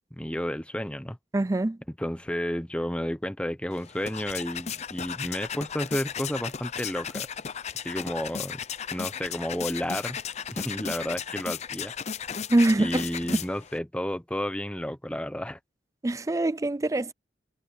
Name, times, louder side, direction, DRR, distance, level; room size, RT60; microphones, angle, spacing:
voice 1, 0.1-1.2 2.0-7.3 7.8-8.6 8.9-10.2 10.5-11.9 12.8-15.6, equal, 5° left, 0.8 m, -31 dB
voice 2, 1.3-1.8 12.5-13.0 16.0-17.1, right 2 dB, 20° right, 0.4 m, -24 dB
sound 1, 3.7-13.8, left 7 dB, 40° left, 0.6 m, -35 dB
head